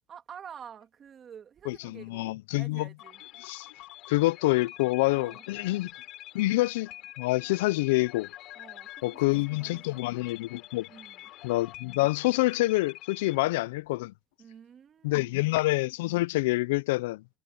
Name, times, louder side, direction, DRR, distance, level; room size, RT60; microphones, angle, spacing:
voice 1, 0.1-3.2 5.1-5.8 6.3-6.6 8.5-10.2 10.9-11.3 13.3-13.5 14.4-15.5, right 8 dB, 30° right, 2.4 m, -50 dB
voice 2, 1.7-2.9 3.5-3.7 4.1-5.9 6.3-6.9 7.2-8.3 9.0-10.9 11.4-14.1 15.0-17.2, left 20 dB, 90° left, 0.3 m, -27 dB
sound 1, 3.0-13.4, left 15 dB, 50° left, 3.6 m, -46 dB
supercardioid pair, 140°, 0 cm